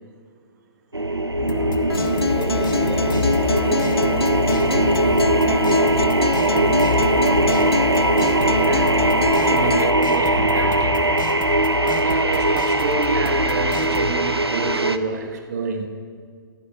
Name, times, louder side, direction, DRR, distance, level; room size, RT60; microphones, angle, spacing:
sound 1, 0.9-15.0, right 2 dB, 90° right, 0.8 m, -20 dB
sound 2, 1.4-14.1, left 4 dB, 55° left, 1.6 m, -28 dB
Acoustic guitar, 1.9-9.9, left 4 dB, 85° left, 0.4 m, -26 dB
voice 1, 2.1-3.9 4.5-7.5, right 1 dB, ahead, -5 dB, 3.1 m, -38 dB
voice 2, 8.4-11.3 11.8-15.9, right 5 dB, 45° right, 5 dB, 1.3 m, -29 dB
16.0 x 13.0 x 5.0 m, 2.1 s
figure-of-eight pair, 125°, 13 cm